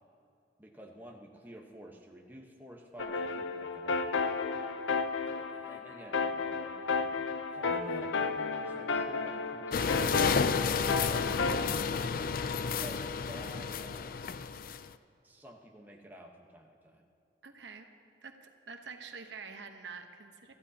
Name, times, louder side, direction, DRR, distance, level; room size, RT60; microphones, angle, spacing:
voice 1, 0.6-4.1 5.2-10.2 10.9-12.3 12.8-14.3 15.2-17.1, right 1 dB, 10° right, 0 dB, 1.1 m, -50 dB
sound 1, 3.0-11.7, left 4 dB, 90° left, 0.7 m, -33 dB
sound 2, 9.7-14.9, left 5 dB, 50° left, 0.4 m, -31 dB
voice 2, 17.4-17.9 18.2-20.5, right 5 dB, 75° right, 5 dB, 1.0 m, -47 dB
23.5 x 14.5 x 2.9 m, 2.6 s
head